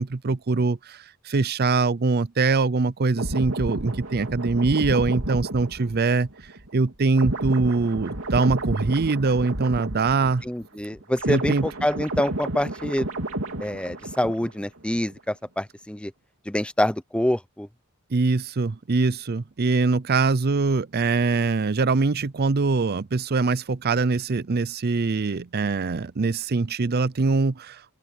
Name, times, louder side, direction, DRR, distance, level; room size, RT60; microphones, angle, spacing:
voice 1, 0.0-6.3 6.7-10.4 11.3-11.7 18.1-27.9, right 3 dB, 45° right, 0.6 m, -23 dB
sound 1, 3.1-10.7 10.9-14.6 14.9-15.2, right 1 dB, 70° right, 3.4 m, -31 dB
voice 2, 10.4-13.1 13.6-16.1 16.5-17.7, left 1 dB, 5° left, 0.7 m, -26 dB
open air
head